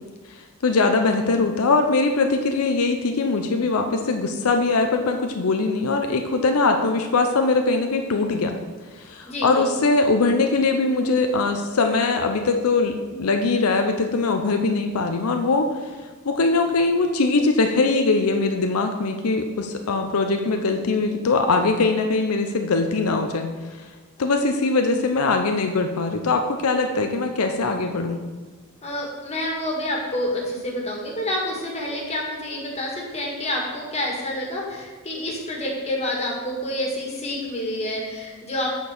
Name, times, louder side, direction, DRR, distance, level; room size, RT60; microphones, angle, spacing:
voice 1, 0.6-8.5 9.0-15.7 16.3-23.5 24.2-28.2, left 3 dB, 85° left, 5 dB, 0.6 m, -21 dB
voice 2, 9.3-9.7 28.8-38.7, left 1 dB, 30° left, -1 dB, 1.8 m, -28 dB
8.1 x 4.5 x 6.5 m, 1.3 s
head